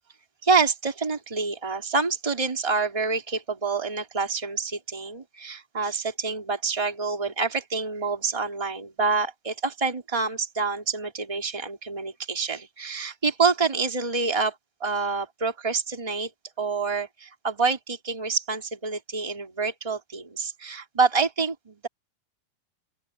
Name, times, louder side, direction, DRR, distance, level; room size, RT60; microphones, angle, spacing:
voice 1, 0.4-16.3 16.6-21.9, right 4 dB, 10° right, 3.3 m, -27 dB
open air
omnidirectional pair, 4.4 m